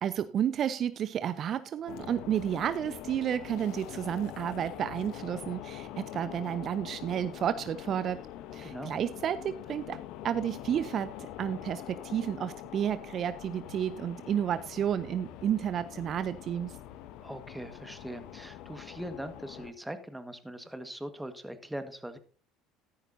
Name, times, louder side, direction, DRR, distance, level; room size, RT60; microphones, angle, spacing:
voice 1, 0.0-8.2 8.5-10.0 10.2-16.8, right 9 dB, 50° right, 14 dB, 0.5 m, -31 dB
sound 1, 1.9-19.7, left 12 dB, 65° left, 0.9 m, -44 dB
voice 2, 8.6-8.9 17.2-22.2, right 1 dB, 5° right, 10 dB, 1.5 m, -41 dB
13.5 x 11.0 x 2.7 m, 0.39 s
hypercardioid pair, 65°, 0 cm